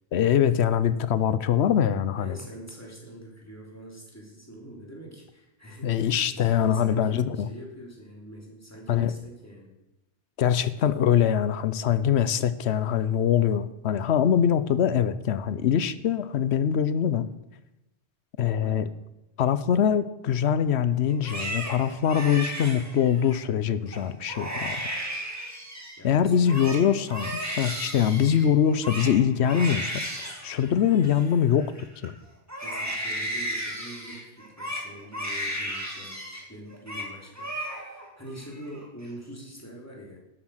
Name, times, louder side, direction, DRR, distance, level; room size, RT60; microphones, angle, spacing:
voice 1, 0.1-2.4 5.8-7.5 8.9-9.1 10.4-17.3 18.4-18.9 19.4-24.8 26.0-31.7 32.0-32.1, left 8 dB, 75° left, 14 dB, 0.9 m, -23 dB
voice 2, 2.1-9.7 18.6-18.8 26.0-26.8 32.6-40.2, right 1 dB, 15° left, -2 dB, 2.9 m, -44 dB
Crying sobbing, 21.1-23.4 23.9-24.0 24.3-26.0 26.3-32.1 32.5-36.4 36.7-37.1 37.4-38.1 38.4-39.1, right 1 dB, 15° right, 2.2 m, -34 dB
12.0 x 7.8 x 6.4 m, 0.95 s
omnidirectional pair, 1.1 m